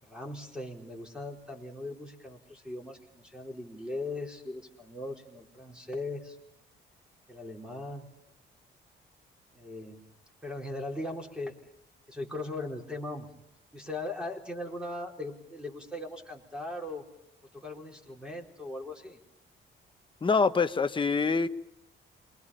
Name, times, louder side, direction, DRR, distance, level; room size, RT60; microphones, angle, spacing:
voice 1, 0.0-6.4 7.3-8.1 9.5-10.0 10.4-11.5 12.1-13.3 13.7-17.0 17.5-19.2, left 2 dB, 5° right, 0 dB, 4.3 m, -39 dB
voice 2, 20.2-21.5, left 4 dB, 25° left, 9 dB, 1.1 m, -25 dB
27.0 x 22.5 x 5.7 m, 0.79 s
cardioid pair, 90°, 20 cm